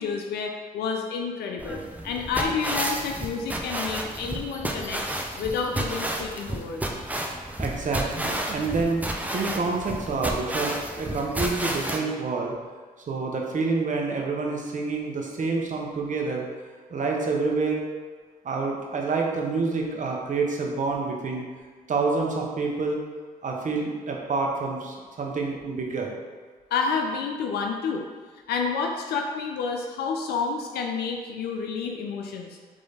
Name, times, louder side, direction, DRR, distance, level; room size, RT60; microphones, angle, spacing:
voice 1, 0.0-5.0 5.4-6.8 26.7-28.0 28.5-32.6, left 5 dB, 85° left, 2 dB, 0.4 m, -29 dB
sound 1, 1.6-12.0, right 1 dB, 10° right, 0.6 m, -31 dB
voice 2, 7.6-9.0 9.3-12.5 13.1-16.4 16.9-17.8 18.4-21.4 21.9-23.0 23.4-26.1, right 4 dB, 50° right, 0 dB, 0.9 m, -27 dB
3.7 x 3.2 x 4.0 m, 1.4 s
supercardioid pair, 55°, 16 cm